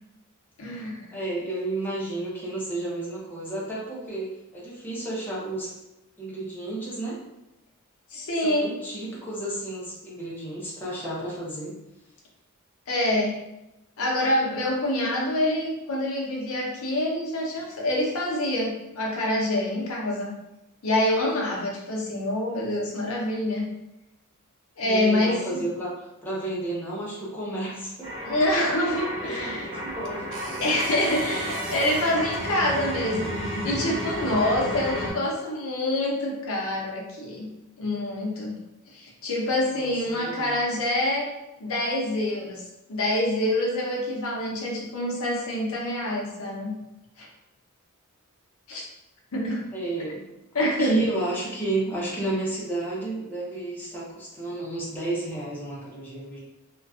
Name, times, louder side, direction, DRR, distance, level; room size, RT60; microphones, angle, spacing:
voice 1, 0.6-1.0 8.1-8.8 12.9-13.4 14.0-20.3 20.8-23.7 24.8-25.4 28.3-29.7 30.6-37.5 37.8-38.6 38.9-41.3 41.6-42.6 42.9-46.7 47.2-47.3 48.7-48.9 49.3-49.6 50.5-51.0, left 1 dB, 70° left, -2 dB, 0.6 m, -26 dB
voice 2, 1.1-5.7 6.2-7.2 8.4-11.7 22.0-22.3 24.8-28.1 29.2-30.2 39.7-40.6 49.7-50.2 50.6-56.4, right 2 dB, 10° left, -7 dB, 0.6 m, -32 dB
sound 1, 28.0-35.1, equal, 35° right, 1.0 m, -32 dB
sound 2, 30.0-32.8 34.5-34.7, right 4 dB, 60° right, 0.3 m, -39 dB
2.4 x 2.2 x 2.3 m, 0.93 s
head